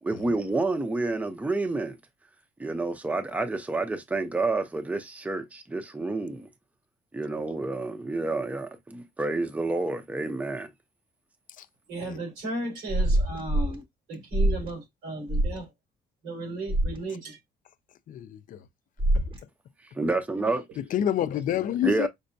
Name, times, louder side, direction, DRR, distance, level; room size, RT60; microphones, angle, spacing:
voice 1, 0.0-2.0 2.6-6.5 7.1-10.7 19.8-20.7 21.8-22.1, right 3 dB, 10° right, 0.6 m, -29 dB
voice 2, 11.9-13.8 14.1-15.7 16.2-17.4, right 2 dB, 90° right, 3.2 m, -35 dB
sound 1, 12.9-13.8 14.3-14.7 15.3-15.6 16.7-17.0 19.0-19.4, right 1 dB, 30° right, 0.9 m, -24 dB
voice 3, 18.1-18.6 19.1-19.2 20.9-22.1, left 11 dB, 55° left, 0.5 m, -28 dB
5.2 x 2.1 x 2.6 m
cardioid pair, 110°, 17 cm